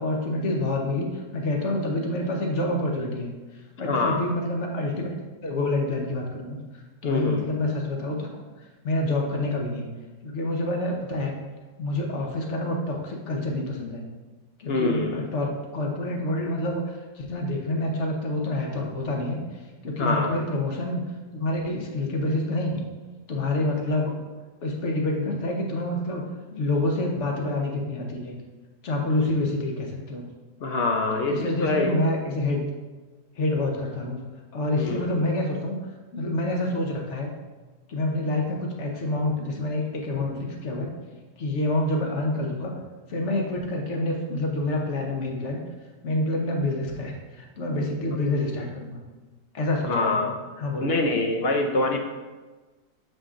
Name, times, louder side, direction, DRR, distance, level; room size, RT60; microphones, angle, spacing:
voice 1, 0.0-3.3 3.8-5.2 5.4-6.6 7.0-8.4 8.8-9.9 10.2-11.3 11.8-14.0 14.6-19.4 19.8-21.1 21.3-22.9 23.3-24.1 24.6-26.2 26.5-28.4 28.8-30.2 31.3-32.6 33.4-35.8 36.1-37.3 37.9-40.9 41.4-42.8 43.1-45.6 46.0-49.0 49.5-50.3 50.6-51.0, left 1 dB, 50° left, 1 dB, 1.2 m, -27 dB
voice 2, 3.8-4.2 7.0-7.5 14.7-15.3 20.0-20.4 30.6-32.0 34.8-35.2 48.1-48.2 49.8-50.4 50.8-52.0, left 2 dB, 65° left, 3 dB, 0.6 m, -25 dB
7.2 x 5.1 x 3.8 m, 1.3 s
omnidirectional pair, 1.8 m